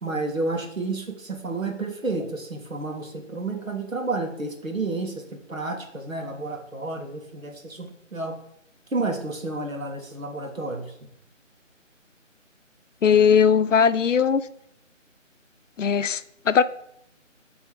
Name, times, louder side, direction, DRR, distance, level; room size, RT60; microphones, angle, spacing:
voice 1, 0.0-5.2 5.5-8.4 8.9-10.9, right 3 dB, 90° right, 3 dB, 1.7 m, -30 dB
voice 2, 13.0-14.5 15.8-16.6, left 7 dB, 70° left, 14 dB, 0.6 m, -19 dB
9.6 x 3.5 x 4.6 m, 0.75 s
figure-of-eight pair, 165°, 39 cm